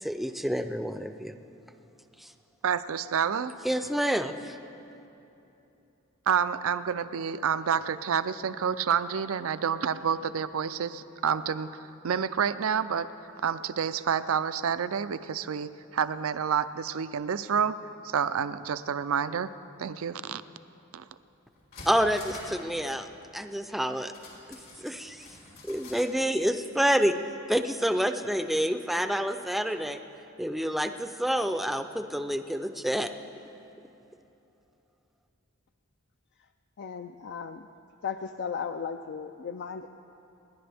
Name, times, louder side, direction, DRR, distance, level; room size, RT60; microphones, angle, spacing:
voice 1, 0.0-1.3 2.2-2.3 3.6-4.6 21.9-23.1 23.3-24.1 24.8-25.3 25.7-27.1 27.5-30.0 30.4-33.1, equal, ahead, 8 dB, 0.5 m, -28 dB
voice 2, 2.6-3.6 6.3-13.1 13.4-17.8 18.0-19.5 19.8-20.4 20.9-21.0, right 7 dB, 80° right, 13 dB, 0.5 m, -29 dB
sound 1, 21.1-21.2 21.5-22.7 22.9-23.0 24.1-26.1 26.4-26.5, left 2 dB, 85° left, 4.2 m, -46 dB
voice 3, 36.8-37.6 38.0-39.9, left 6 dB, 55° left, 7 dB, 0.4 m, -35 dB
27.5 x 11.0 x 3.5 m, 3.0 s
head